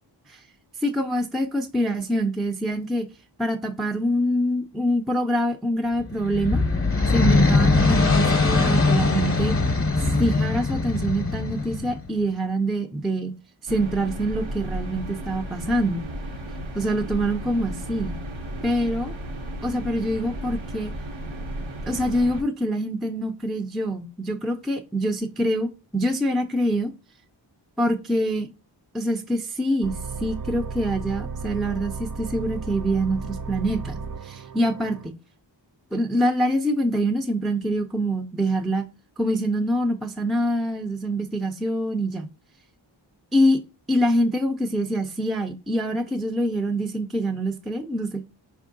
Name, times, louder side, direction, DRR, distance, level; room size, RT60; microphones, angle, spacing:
voice 1, 0.8-3.1 3.4-6.6 7.1-9.6 10.2-13.3 13.6-16.1 16.7-18.2 18.6-19.1 19.6-20.9 21.9-26.9 27.8-28.5 28.9-35.1 35.9-38.8 39.2-42.3 43.3-43.6 43.9-48.2, equal, ahead, 7 dB, 0.4 m, -25 dB
sound 1, 6.0-12.1, left 3 dB, 30° left, 0.7 m, -21 dB
sound 2, 13.7-22.4, right 1 dB, 90° right, 0.8 m, -34 dB
sound 3, 29.8-35.1, right 4 dB, 50° right, 0.6 m, -34 dB
4.4 x 3.6 x 2.5 m, 0.31 s
wide cardioid pair, 50°, 46 cm